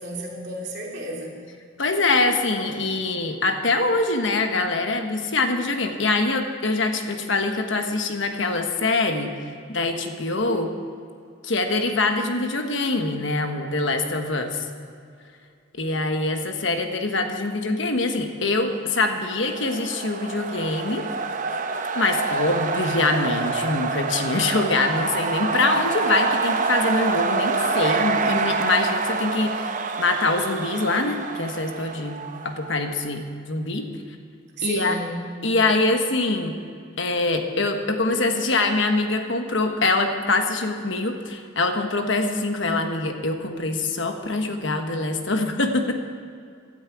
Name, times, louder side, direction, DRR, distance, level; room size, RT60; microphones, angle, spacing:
voice 1, 0.0-1.4 34.6-35.3, right 2 dB, 55° right, -2 dB, 3.0 m, -31 dB
voice 2, 1.8-9.3 9.7-10.7 11.4-14.7 15.7-21.0 21.9-32.2 32.4-33.2 33.5-33.9 34.6-35.0 35.4-36.6 37.0-45.9, left 3 dB, 65° left, 5 dB, 1.3 m, -24 dB
sound 1, 19.1-32.8, right 4 dB, 40° right, 0.8 m, -27 dB
16.5 x 12.0 x 4.8 m, 2.3 s
head